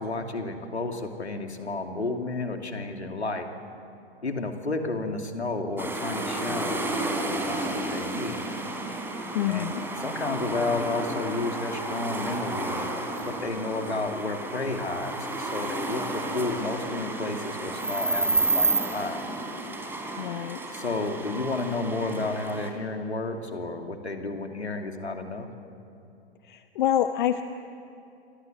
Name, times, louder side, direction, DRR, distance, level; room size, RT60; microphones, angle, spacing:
voice 1, 0.0-3.5 4.2-8.4 9.5-19.2 20.7-25.5, left 3 dB, 80° left, 5 dB, 2.6 m, -32 dB
sound 1, 5.8-22.7, right 2 dB, 5° right, 3.7 m, -31 dB
voice 2, 9.3-9.8 20.2-20.6 26.5-27.4, left 11 dB, 50° left, 9 dB, 1.1 m, -26 dB
28.5 x 24.0 x 7.8 m, 2.7 s
figure-of-eight pair, 105°, 33 cm